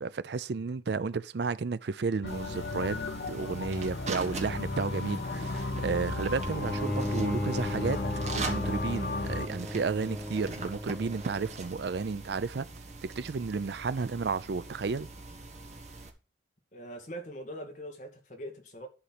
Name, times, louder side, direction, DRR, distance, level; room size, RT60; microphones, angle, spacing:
voice 1, 0.0-3.0 3.3-8.0 8.4-12.7 13.0-15.1, right 4 dB, 65° right, 0.4 m, -32 dB
sound 1, 2.2-9.5, left 2 dB, 65° left, 0.8 m, -34 dB
sound 2, 2.3-16.1, right 3 dB, 35° right, 1.3 m, -43 dB
Bowed string instrument, 6.4-11.6, left 1 dB, 5° left, 0.7 m, -36 dB
voice 2, 16.7-18.9, equal, 40° left, 2.0 m, -42 dB
11.5 x 4.2 x 5.8 m
head